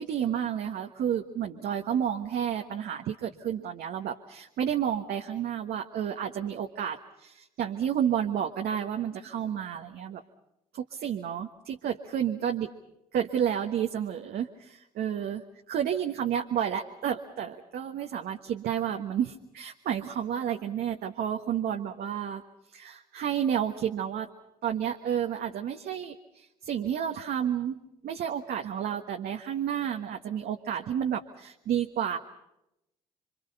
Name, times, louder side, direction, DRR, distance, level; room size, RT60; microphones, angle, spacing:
voice 1, 0.0-10.2 10.7-12.7 13.1-22.4 22.7-24.3 24.6-32.2, right 9 dB, 65° right, 3 dB, 1.3 m, -31 dB
28.0 x 24.5 x 5.5 m, 0.87 s
hypercardioid pair, 55°, 17 cm